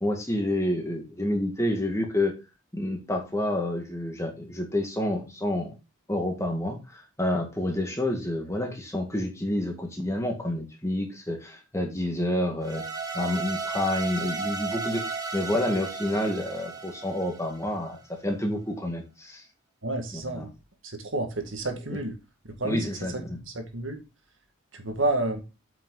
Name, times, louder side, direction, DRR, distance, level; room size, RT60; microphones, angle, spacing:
voice 1, 0.0-2.3 2.7-5.8 6.1-12.8 13.1-15.0 15.3-19.4 20.1-20.4 22.6-23.4, left 1 dB, 15° left, 1.7 m, -29 dB
sound 1, 12.6-17.8, right 4 dB, 15° right, 1.1 m, -34 dB
voice 2, 19.8-20.5 20.8-22.2 22.6-22.9 23.1-24.0 24.7-25.4, right 2 dB, 65° right, 1.8 m, -30 dB
8.4 x 5.9 x 3.9 m
head